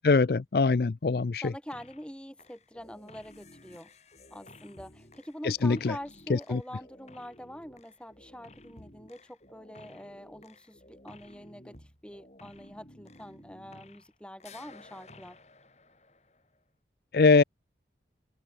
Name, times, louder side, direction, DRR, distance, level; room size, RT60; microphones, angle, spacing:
voice 1, 0.0-1.5 5.4-5.9 6.5-6.6 17.1-17.4, left 4 dB, 55° left, 0.5 m, -23 dB
voice 2, 1.4-3.9 4.3-15.4, equal, 5° left, 4.4 m, -45 dB
sound 1, 1.7-2.1 2.4-14.1 14.4-16.6, left 2 dB, 40° left, 6.2 m, -54 dB
head